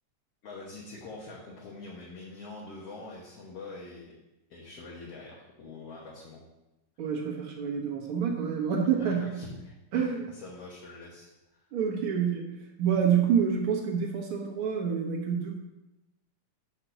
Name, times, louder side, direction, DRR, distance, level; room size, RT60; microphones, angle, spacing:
voice 1, 0.4-4.1 4.5-6.4 9.0-11.7, left 3 dB, 55° left, -5 dB, 2.1 m, -45 dB
voice 2, 7.0-9.4 9.9-10.3 11.7-15.6, right 7 dB, 55° right, -1 dB, 1.9 m, -28 dB
6.1 x 5.8 x 6.8 m, 0.96 s
omnidirectional pair, 3.5 m